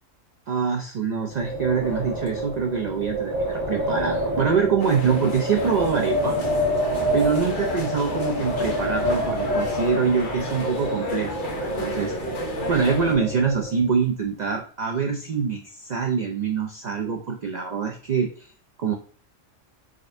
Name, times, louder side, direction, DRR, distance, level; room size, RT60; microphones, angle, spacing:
voice 1, 0.5-6.4 7.1-12.3 12.7-18.5 18.8-18.9, right 6 dB, 80° right, 2 dB, 0.4 m, -25 dB
Wind, 1.3-13.9, equal, 40° right, 1.4 m, -28 dB
sound 1, 4.8-13.2, left 3 dB, 45° left, 0.8 m, -33 dB
3.7 x 3.3 x 2.5 m, 0.42 s
omnidirectional pair, 1.3 m